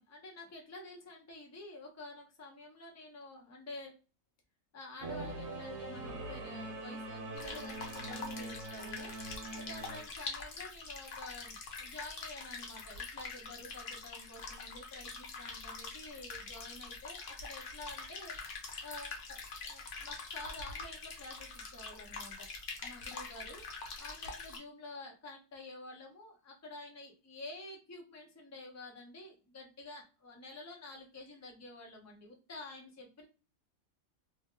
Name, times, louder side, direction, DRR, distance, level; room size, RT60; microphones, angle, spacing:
voice 1, 0.0-3.9 4.7-9.1 9.5-18.4 18.8-22.5 22.8-23.6 24.0-33.3, left 2 dB, 20° left, 0 dB, 0.4 m, -49 dB
Singing / Musical instrument, 5.0-10.0, right 2 dB, 60° right, 0.9 m, -43 dB
sound 1, 7.4-24.6, left 4 dB, 60° left, 1.0 m, -44 dB
2.7 x 2.1 x 3.2 m, 0.32 s
omnidirectional pair, 1.5 m